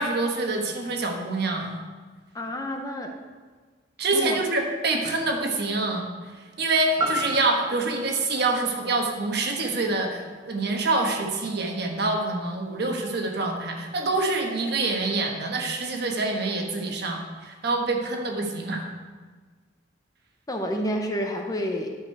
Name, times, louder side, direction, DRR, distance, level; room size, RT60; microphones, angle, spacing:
voice 1, 0.0-1.8 4.0-6.1 6.6-18.9, right 3 dB, 60° right, 2 dB, 1.3 m, -26 dB
voice 2, 2.3-3.2 4.1-4.4 20.5-21.9, equal, 20° left, 3 dB, 0.8 m, -29 dB
sound 1, 7.0-11.1 11.5-11.6, right 1 dB, 20° right, 1.2 m, -34 dB
11.0 x 6.5 x 4.7 m, 1.4 s
head